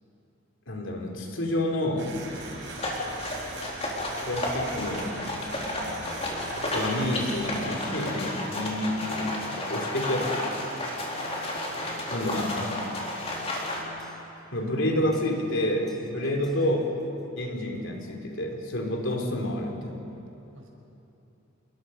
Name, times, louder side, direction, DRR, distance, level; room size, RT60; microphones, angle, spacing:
voice 1, 0.7-2.2 4.2-5.1 6.6-10.5 12.1-12.8 14.5-16.8 17.4-20.0, left 1 dB, 70° left, 1 dB, 3.4 m, -29 dB
sound 1, 2.0-7.6, right 3 dB, 65° right, 4.8 m, -40 dB
sound 2, 2.7-13.8, left 1 dB, 30° left, 4.1 m, -32 dB
sound 3, 5.0-8.4 9.1-9.5 10.2-10.6 11.0-14.4 15.1-15.6 15.9-17.2, left 1 dB, 5° left, 2.8 m, -50 dB
voice 2, 5.5-6.0 11.7-12.3 16.1-16.3 20.5-20.7, right 1 dB, 85° right, -1 dB, 5.9 m, -48 dB
29.0 x 21.0 x 5.8 m, 2.9 s
head